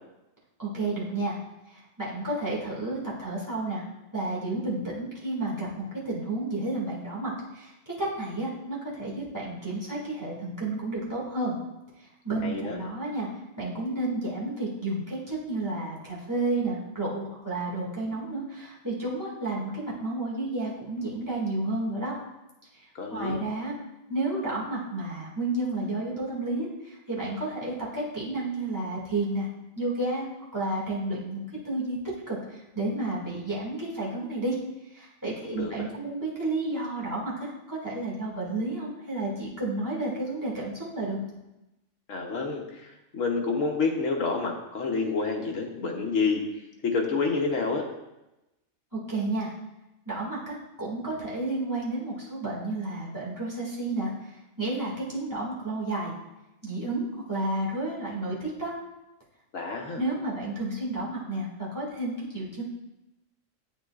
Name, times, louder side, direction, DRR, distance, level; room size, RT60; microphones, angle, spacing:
voice 1, 0.6-1.4 1.7-3.8 4.1-11.6 12.2-13.3 13.6-22.1 23.1-23.7 24.1-29.5 29.8-30.3 30.5-32.0 32.3-34.5 34.9-41.2 49.1-49.5 50.1-56.1 56.6-58.7 60.0-62.6, right 2 dB, 15° right, -7 dB, 2.1 m, -31 dB
voice 2, 12.4-12.8 22.9-23.3 35.5-35.9 42.1-46.4 46.8-47.8 59.5-60.0, left 4 dB, 80° left, 1 dB, 1.4 m, -28 dB
8.4 x 7.1 x 2.4 m, 0.96 s
omnidirectional pair, 1.3 m